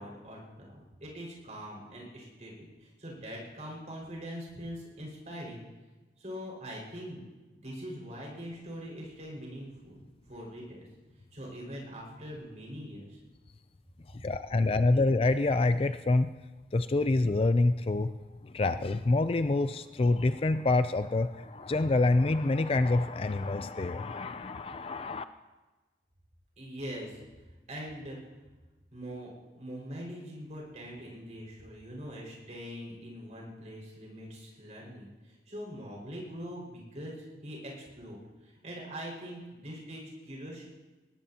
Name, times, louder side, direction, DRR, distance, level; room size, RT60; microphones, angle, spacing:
voice 1, 0.0-5.6 6.2-7.2 7.6-10.0 10.2-10.8 11.3-13.2 26.6-27.2 27.7-28.2 28.9-40.7, equal, 40° right, -3 dB, 5.3 m, -43 dB
voice 2, 14.1-16.3 16.7-18.1 18.4-25.2, left 2 dB, 30° left, 11 dB, 0.4 m, -27 dB
20.5 x 18.0 x 2.9 m, 1.2 s
head